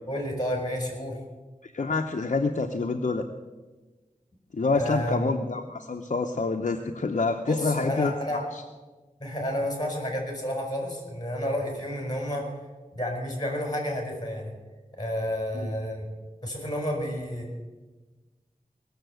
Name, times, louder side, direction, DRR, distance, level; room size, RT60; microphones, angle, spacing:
voice 1, 0.1-1.2 4.7-5.3 7.5-8.4 9.2-12.5 12.9-14.5 15.0-16.1 16.4-17.5, equal, 25° left, 1 dB, 4.9 m, -30 dB
voice 2, 1.6-3.2 4.5-8.6 15.5-15.7, left 3 dB, 55° left, 4 dB, 0.8 m, -27 dB
19.5 x 7.1 x 7.8 m, 1.3 s
wide cardioid pair, 65°, 15 cm